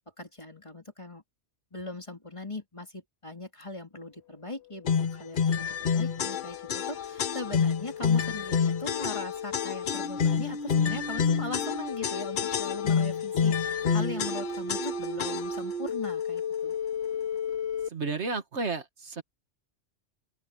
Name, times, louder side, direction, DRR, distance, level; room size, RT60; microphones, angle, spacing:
voice 1, 0.2-1.2 1.7-16.7, left 2 dB, 25° left, 3.1 m, -40 dB
sound 1, 4.6-17.9, left 4 dB, 65° left, 2.2 m, -36 dB
sound 2, 4.9-15.7, left 6 dB, 50° left, 0.8 m, -28 dB
voice 2, 17.9-19.2, right 3 dB, 70° right, 1.9 m, -32 dB
open air
omnidirectional pair, 1.2 m